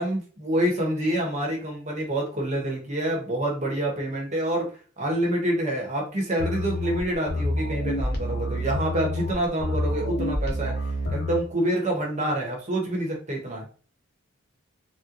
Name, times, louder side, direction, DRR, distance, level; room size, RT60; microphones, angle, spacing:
voice 1, 0.0-4.7 5.0-10.7 11.1-13.6, right 1 dB, 35° right, 0 dB, 1.0 m, -27 dB
sound 1, 6.4-11.4, left 1 dB, 50° left, 0.7 m, -28 dB
3.7 x 2.2 x 2.9 m, 0.40 s
head